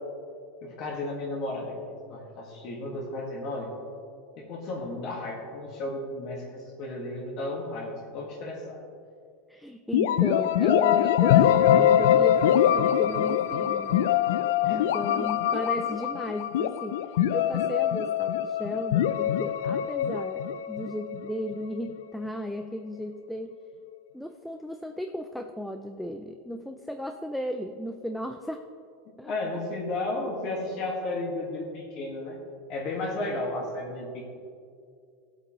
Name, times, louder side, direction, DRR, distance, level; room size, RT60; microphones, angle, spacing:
voice 1, 0.6-1.7 2.1-3.7 4.4-8.8 14.6-15.3 29.2-32.4 32.7-34.2, left 2 dB, 40° left, -2 dB, 1.7 m, -33 dB
voice 2, 9.5-14.1 14.7-23.6 24.1-28.6 29.2-29.3, left 1 dB, ahead, 5 dB, 0.3 m, -35 dB
sound 1, 9.9-21.6, left 10 dB, 85° left, 0.4 m, -23 dB
16.5 x 8.0 x 3.1 m, 2.4 s
supercardioid pair, 165°, 0 cm